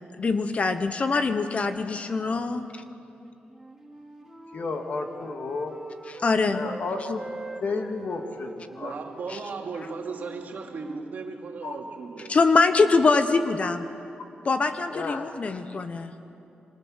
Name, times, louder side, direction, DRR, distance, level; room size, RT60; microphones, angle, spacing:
voice 1, 0.2-2.8 6.1-6.6 9.3-9.4 12.3-13.8 14.4-16.1, left 4 dB, 40° left, 9 dB, 1.1 m, -23 dB
Wind instrument woodwind instrument, 3.4-6.8 7.1-11.0, right 2 dB, 10° right, 2.6 m, -44 dB
voice 2, 4.5-5.7 6.5-7.3 7.6-8.9 11.6-11.8 14.9-15.3, left 3 dB, 55° left, 4 dB, 2.4 m, -32 dB
voice 3, 8.7-12.3, right 4 dB, 60° right, 2 dB, 2.6 m, -36 dB
27.0 x 25.5 x 6.6 m, 2.7 s
wide cardioid pair, 120°, 3 cm